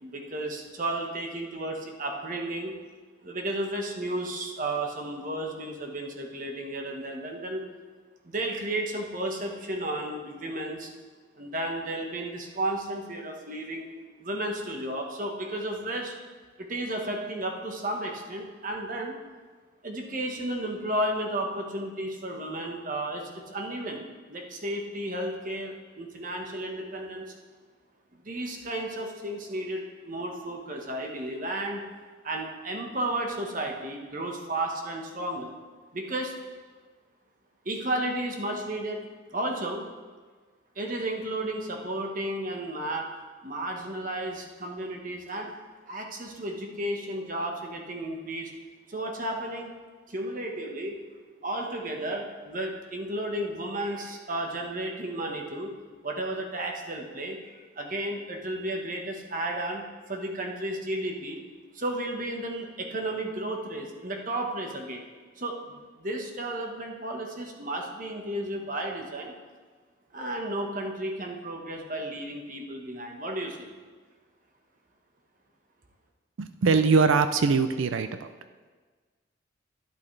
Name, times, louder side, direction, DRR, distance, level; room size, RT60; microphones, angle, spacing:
voice 1, 0.0-2.7 3.2-7.6 8.2-10.9 11.4-13.9 14.2-16.1 16.6-19.2 19.8-24.0 24.3-27.3 28.1-31.8 32.2-35.5 35.9-36.4 37.6-39.0 39.3-39.8 40.7-43.1 43.4-45.5 45.9-48.5 48.9-49.7 50.1-51.0 51.4-55.7 56.0-61.4 61.7-65.0 65.4-65.6 66.0-69.3 70.1-73.7, right 1 dB, 40° right, 2 dB, 1.2 m, -33 dB
voice 2, 76.4-78.3, right 4 dB, 80° right, 10 dB, 0.5 m, -22 dB
12.0 x 11.0 x 3.3 m, 1.4 s
head